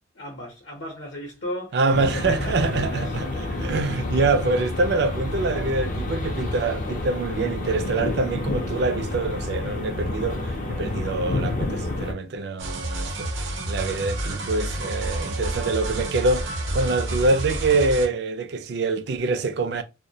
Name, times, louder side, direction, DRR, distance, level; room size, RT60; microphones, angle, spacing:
voice 1, 0.1-3.2, equal, 75° left, 0.7 m, -36 dB
voice 2, 1.7-19.8, right 3 dB, 55° right, 0.3 m, -25 dB
sound 1, 1.9-12.1, left 2 dB, 40° left, 0.4 m, -29 dB
sound 2, 12.6-18.1, right 1 dB, 75° right, 0.7 m, -29 dB
2.2 x 2.1 x 2.7 m
head